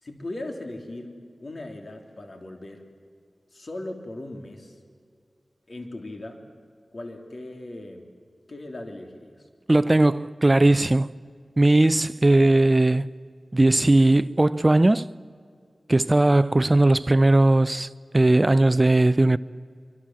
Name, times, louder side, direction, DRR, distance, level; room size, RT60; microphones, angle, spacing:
voice 1, 0.0-2.8 3.5-4.8 5.7-6.4 6.9-8.1 8.5-9.5, left 1 dB, 55° left, 3.5 m, -38 dB
voice 2, 9.7-11.1 11.6-13.1 13.5-15.1 15.9-19.4, right 2 dB, 30° right, 0.6 m, -18 dB
25.0 x 24.0 x 7.6 m
wide cardioid pair, 55°, 0 cm